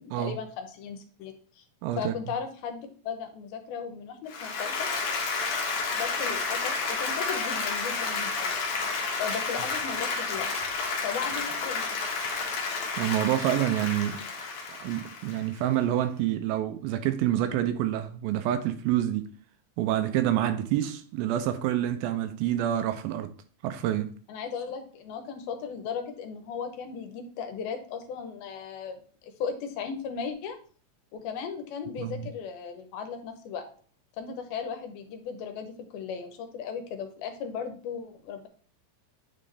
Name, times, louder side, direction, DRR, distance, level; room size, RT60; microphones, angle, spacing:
voice 1, 0.0-1.6 2.0-4.9 5.9-8.5 9.2-10.5 11.0-12.0 24.3-30.6 31.1-33.6 34.2-38.5, left 6 dB, 80° left, 2.7 m, -36 dB
voice 2, 1.8-2.1 13.0-14.2 14.8-19.3 19.8-23.3 23.6-24.1 32.0-32.2, right 12 dB, 80° right, 2.2 m, -27 dB
Applause, 4.3-15.6, left 4 dB, 65° left, 2.3 m, -31 dB
9.3 x 3.7 x 3.3 m
omnidirectional pair, 4.4 m